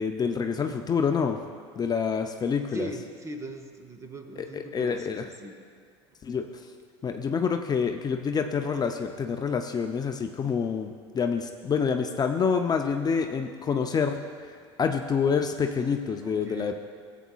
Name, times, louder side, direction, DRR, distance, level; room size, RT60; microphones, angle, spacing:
voice 1, 0.0-1.4 1.8-2.9 4.4-5.2 6.2-6.5 7.0-14.2 14.8-16.7, left 6 dB, 25° left, 5 dB, 0.5 m, -27 dB
voice 2, 2.7-5.6 16.2-16.7, right 2 dB, 20° right, 6 dB, 0.9 m, -40 dB
15.5 x 8.3 x 2.4 m, 2.1 s
hypercardioid pair, 80°, 15 cm